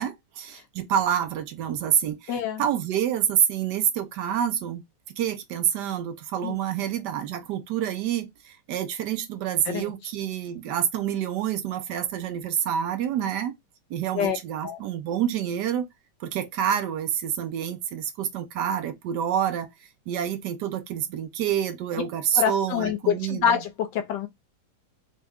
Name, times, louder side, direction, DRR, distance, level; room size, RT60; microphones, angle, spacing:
voice 1, 0.0-2.3 2.6-4.8 5.2-13.5 13.9-15.9 16.2-19.7 20.1-23.6, right 9 dB, 75° right, 1.1 m, -27 dB
voice 2, 2.3-2.6 6.4-6.6 9.7-9.9 14.1-14.4 14.6-14.8 22.3-24.3, left 8 dB, 75° left, 1.3 m, -26 dB
3.8 x 2.2 x 3.4 m
omnidirectional pair, 2.0 m